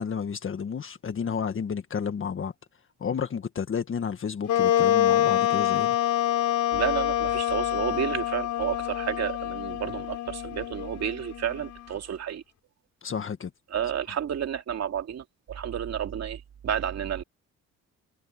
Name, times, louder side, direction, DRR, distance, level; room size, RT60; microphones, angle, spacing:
voice 1, 0.0-2.5 3.0-6.0 13.0-13.5, left 6 dB, 45° left, 1.6 m, -31 dB
Wind instrument woodwind instrument, 4.5-11.9, left 12 dB, 75° left, 4.1 m, -26 dB
voice 2, 6.7-12.4 13.7-17.2, right 9 dB, 60° right, 2.8 m, -31 dB
cardioid pair, 90°, 30 cm